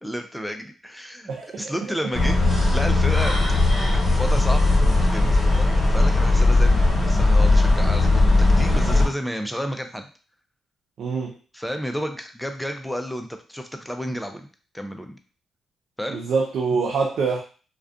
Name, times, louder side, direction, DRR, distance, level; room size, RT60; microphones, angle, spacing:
voice 1, 0.0-2.4 2.7-3.3 4.0-8.2 8.6-10.1 11.5-14.5 14.7-15.1 16.0-16.2, equal, ahead, 5 dB, 0.5 m, -31 dB
voice 2, 1.3-1.7 11.0-11.3 16.1-17.4, right 4 dB, 70° right, 0 dB, 0.4 m, -25 dB
sound 1, 2.1-9.1, left 2 dB, 30° left, 1.2 m, -18 dB
2.4 x 2.2 x 2.4 m, 0.38 s
supercardioid pair, 60°, 0 cm